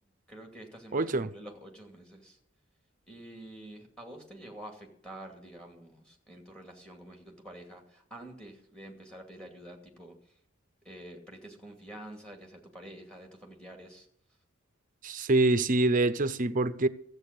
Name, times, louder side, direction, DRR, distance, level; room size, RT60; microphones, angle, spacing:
voice 1, 0.3-2.4 3.1-10.2 10.8-14.1, right 1 dB, 5° left, 2.4 m, -48 dB
voice 2, 0.9-1.3 15.0-16.9, right 2 dB, 40° right, 0.6 m, -25 dB
14.0 x 8.1 x 6.7 m
head